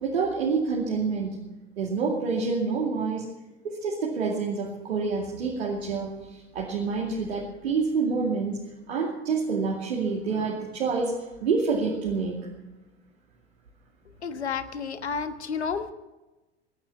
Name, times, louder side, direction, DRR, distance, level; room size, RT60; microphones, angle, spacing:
voice 1, 0.0-1.4 1.8-3.3 3.6-8.6 8.9-11.1 11.4-12.3, right 4 dB, 70° right, -2 dB, 2.6 m, -27 dB
voice 2, 14.2-15.9, left 6 dB, 75° left, 10 dB, 1.3 m, -31 dB
23.5 x 9.6 x 5.9 m, 1.1 s
figure-of-eight pair, 75°, 33 cm